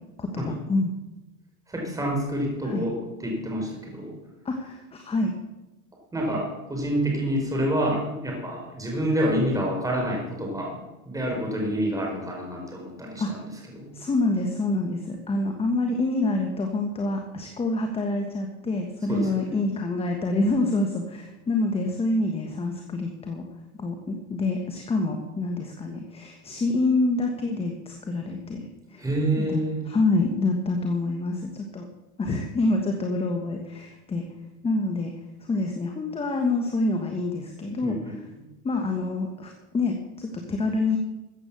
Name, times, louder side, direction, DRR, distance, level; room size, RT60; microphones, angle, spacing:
voice 1, 0.2-0.9 2.6-2.8 4.4-5.3 13.2-13.4 13.9-23.4 23.8-29.0 29.4-31.9 32.2-34.2 34.6-35.1 35.4-38.2 38.6-41.0, left 2 dB, 15° left, 4 dB, 1.4 m, -27 dB
voice 2, 1.7-4.2 6.1-13.9 19.1-19.6 29.0-29.8 37.8-38.2, equal, 10° right, -1 dB, 4.4 m, -28 dB
14.5 x 8.5 x 6.9 m, 1.0 s
supercardioid pair, 135°, 43 cm